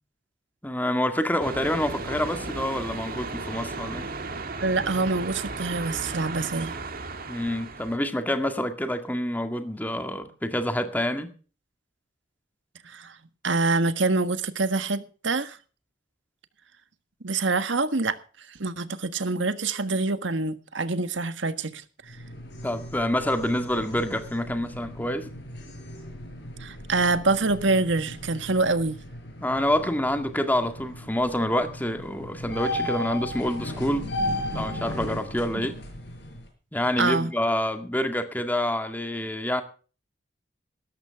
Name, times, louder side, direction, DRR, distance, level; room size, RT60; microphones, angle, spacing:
voice 1, 0.6-4.1 7.3-11.3 22.6-25.3 29.4-34.1 34.5-35.8 36.7-39.6, left 1 dB, 10° left, 1.9 m, -27 dB
sound 1, 1.4-8.0, right 3 dB, 50° right, 2.2 m, -35 dB
voice 2, 4.6-6.8 12.8-13.2 13.4-15.6 17.2-18.2 18.5-22.2 26.6-29.0 35.5-35.7 37.0-37.3, right 3 dB, 80° right, 1.5 m, -26 dB
sound 2, 22.0-36.5, left 1 dB, 65° left, 6.1 m, -36 dB
17.5 x 13.5 x 3.5 m
head